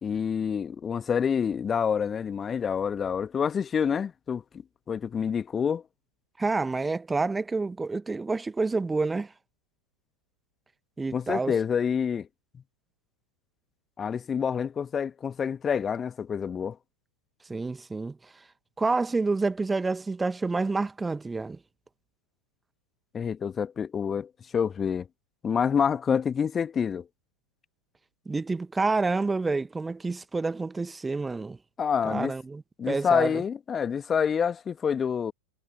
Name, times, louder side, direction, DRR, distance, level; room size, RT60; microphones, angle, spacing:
voice 1, 0.0-5.8 11.1-12.3 14.0-16.8 23.1-25.1 25.4-27.1 31.8-32.3 32.8-35.3, left 7 dB, 20° left, 1.6 m, -27 dB
voice 2, 6.4-9.3 11.0-11.5 17.5-18.2 18.8-21.6 28.2-31.6 32.0-33.4, right 3 dB, 10° right, 1.5 m, -28 dB
figure-of-eight pair, 90°, 0 cm